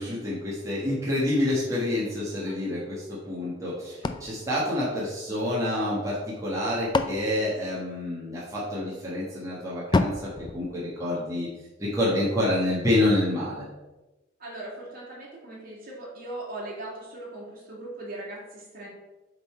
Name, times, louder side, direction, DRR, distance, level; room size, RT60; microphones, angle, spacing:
voice 1, 0.0-3.9 4.2-11.5 11.8-13.6, left 1 dB, 15° right, -8 dB, 1.5 m, -28 dB
Hitting metal, 4.0-5.6 6.4-8.4 9.9-11.5, left 3 dB, 25° left, 0.3 m, -31 dB
voice 2, 14.4-18.9, right 2 dB, 50° right, -5 dB, 2.5 m, -39 dB
7.9 x 3.9 x 4.5 m, 1.1 s
head